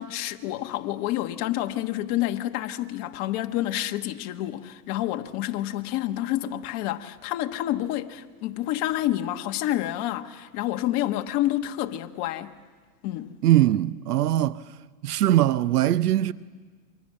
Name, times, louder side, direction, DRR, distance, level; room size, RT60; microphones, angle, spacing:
voice 1, 0.0-12.5 13.0-13.3, left 14 dB, 40° left, 1.4 m, -28 dB
voice 2, 13.4-14.6 15.0-16.3, right 13 dB, 85° right, 0.8 m, -21 dB
28.5 x 24.5 x 7.5 m
hypercardioid pair, 135°, 45 cm